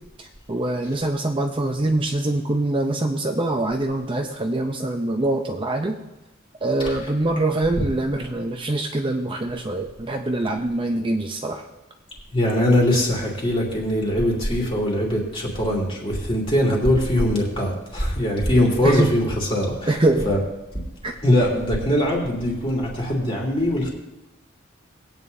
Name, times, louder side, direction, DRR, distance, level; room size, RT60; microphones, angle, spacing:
voice 1, 0.5-6.0 6.6-11.6 18.8-19.2 19.9-20.3 21.0-21.1, right 2 dB, 25° right, 2 dB, 0.7 m, -24 dB
voice 2, 12.3-19.9 20.2-20.4 21.2-23.9, left 1 dB, 30° left, -3 dB, 3.0 m, -21 dB
20.0 x 9.0 x 2.7 m, 1.0 s
head